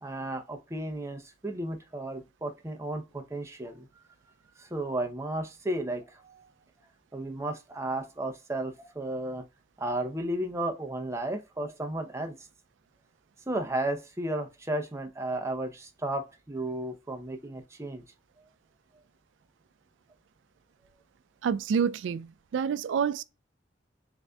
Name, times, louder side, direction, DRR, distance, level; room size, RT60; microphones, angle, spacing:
voice 1, 0.0-3.9 4.6-6.5 7.1-9.4 9.8-12.4 13.5-18.0, right 1 dB, 15° right, 0.6 m, -33 dB
voice 2, 21.4-23.2, right 7 dB, 85° right, 0.3 m, -28 dB
7.1 x 2.6 x 2.3 m
head